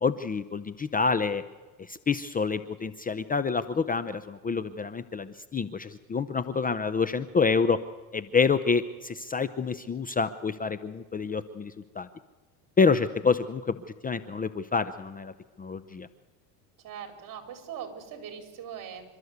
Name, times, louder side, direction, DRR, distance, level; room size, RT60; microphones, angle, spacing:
voice 1, 0.0-1.4 1.8-7.8 8.1-12.1 12.8-15.3 15.6-16.1, left 5 dB, 20° left, 13 dB, 0.7 m, -27 dB
voice 2, 16.8-19.0, right 8 dB, 45° right, 5 dB, 4.5 m, -41 dB
28.0 x 13.0 x 8.1 m, 1.3 s
supercardioid pair, 115°, 44 cm